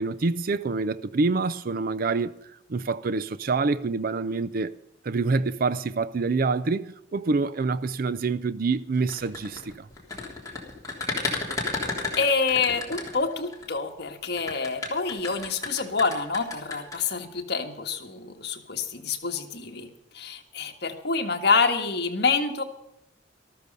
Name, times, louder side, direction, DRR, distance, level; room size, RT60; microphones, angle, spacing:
voice 1, 0.0-2.3 2.7-4.7 5.0-9.9, right 4 dB, 50° right, 0.5 m, -26 dB
sound 1, 9.0-13.7 14.4-17.0, left 3 dB, 20° left, 3.4 m, -32 dB
voice 2, 12.2-19.9 20.1-22.6, left 4 dB, 60° left, 1.7 m, -27 dB
13.5 x 13.5 x 5.4 m
head